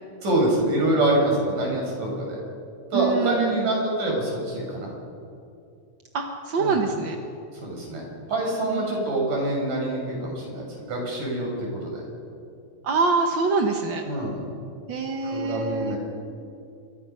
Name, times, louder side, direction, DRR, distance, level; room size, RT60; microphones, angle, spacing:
voice 1, 0.2-2.4 2.9-4.9 6.6-6.7 7.6-12.0 14.1-14.4 15.2-16.0, right 1 dB, 70° right, -1 dB, 7.8 m, -25 dB
voice 2, 2.9-3.7 6.1-7.2 8.7-9.1 12.8-14.0 14.9-16.0, right 4 dB, 55° right, 3 dB, 1.4 m, -25 dB
27.0 x 23.5 x 5.7 m, 2.5 s
omnidirectional pair, 3.8 m